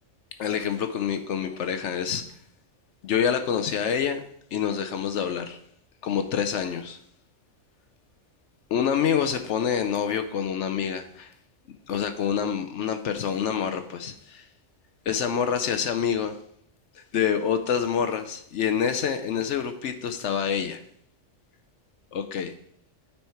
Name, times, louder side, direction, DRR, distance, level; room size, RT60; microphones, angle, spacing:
voice 1, 0.4-2.3 3.0-4.2 4.5-5.6 6.0-7.0 8.7-11.3 11.9-14.4 15.1-16.4 16.9-20.8 22.1-22.5, left 8 dB, 70° left, 7 dB, 0.9 m, -27 dB
8.9 x 4.3 x 4.4 m, 0.67 s
omnidirectional pair, 1.3 m